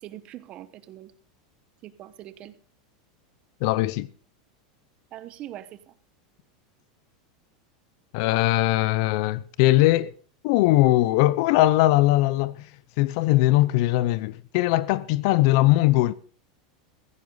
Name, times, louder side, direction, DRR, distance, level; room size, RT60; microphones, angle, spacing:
voice 1, 0.0-1.1 1.8-2.5 5.1-5.9, right 13 dB, 30° right, 1.1 m, -42 dB
voice 2, 3.6-4.1 8.1-10.1 10.4-12.7 13.0-16.1, left 17 dB, 50° left, 0.7 m, -20 dB
16.0 x 15.5 x 3.9 m
supercardioid pair, 165°, 4 cm